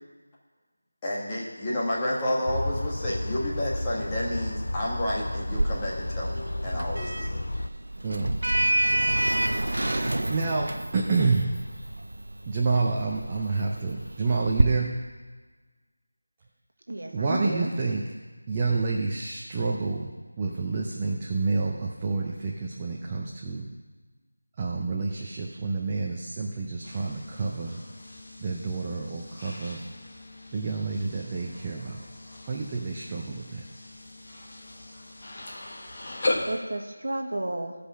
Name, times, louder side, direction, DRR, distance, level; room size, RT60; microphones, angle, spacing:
voice 1, 1.0-7.4, left 1 dB, 15° left, -6 dB, 1.4 m, -30 dB
sound 1, 2.5-7.7, left 1 dB, 85° left, 0.5 m, -32 dB
Sliding door, 5.5-14.6, right 1 dB, 80° right, 0.6 m, -28 dB
voice 2, 8.0-8.4 8.7-9.5 9.8-11.6 12.5-15.1 17.1-18.1 18.5-23.7 24.6-27.8 28.4-29.8 30.5-32.0 32.5-33.7, right 3 dB, 15° right, -2 dB, 0.6 m, -29 dB
voice 3, 16.9-17.7 36.4-37.8, right 1 dB, 65° right, 3 dB, 1.4 m, -32 dB
sound 2, 26.8-36.6, left 2 dB, 35° left, 1.3 m, -38 dB
15.0 x 5.1 x 5.6 m, 1.4 s
figure-of-eight pair, 175°, 0 cm